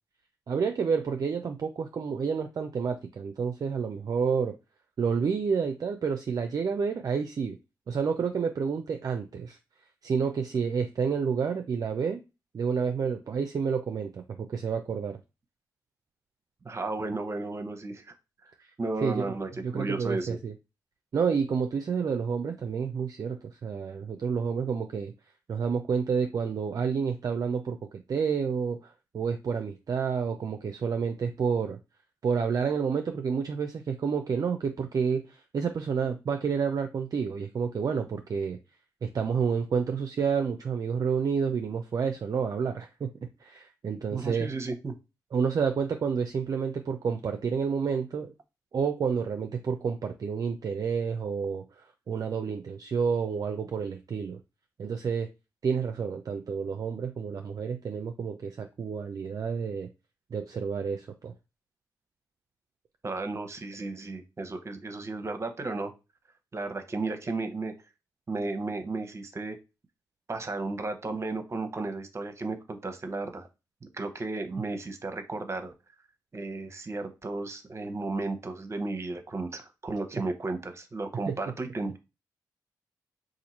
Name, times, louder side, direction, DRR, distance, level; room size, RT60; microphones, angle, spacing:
voice 1, 0.5-4.5 5.0-7.6 7.9-9.6 10.0-12.2 12.5-15.2 19.0-19.3 19.6-20.5 21.1-25.1 25.5-27.8 28.1-31.8 32.2-38.6 39.0-43.1 43.4-44.5 45.3-48.3 48.7-54.4 54.8-55.3 55.6-59.9 60.3-61.3 81.3-81.4, right 6 dB, 50° right, 6 dB, 0.4 m, -29 dB
voice 2, 16.6-18.1 18.8-20.4 44.1-45.0 63.0-65.9 66.5-67.7 68.3-69.6 70.3-73.5 73.8-75.7 76.3-82.0, right 3 dB, 35° right, 7 dB, 0.8 m, -34 dB
2.8 x 2.5 x 4.1 m, 0.27 s
supercardioid pair, 45°, 8 cm